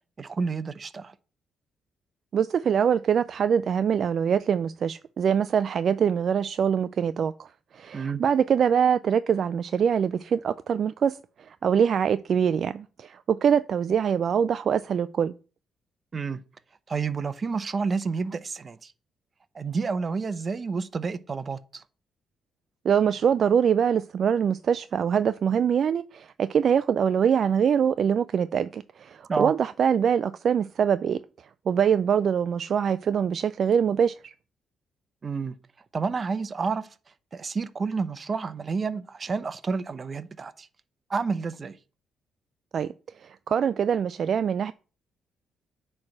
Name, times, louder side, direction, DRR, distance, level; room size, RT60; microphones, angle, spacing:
voice 1, 0.2-1.1 7.9-8.2 16.1-16.4 16.9-18.9 19.5-21.8 29.3-29.5 35.2-35.6 35.9-36.9 37.3-40.7 41.1-41.7, right 4 dB, 35° right, 0.7 m, -30 dB
voice 2, 2.3-7.5 7.7-15.3 22.8-31.2 31.7-34.3 42.7-42.9 43.2-44.7, right 7 dB, 55° right, 0.3 m, -24 dB
8.6 x 3.3 x 6.0 m
cardioid pair, 90°, 0 cm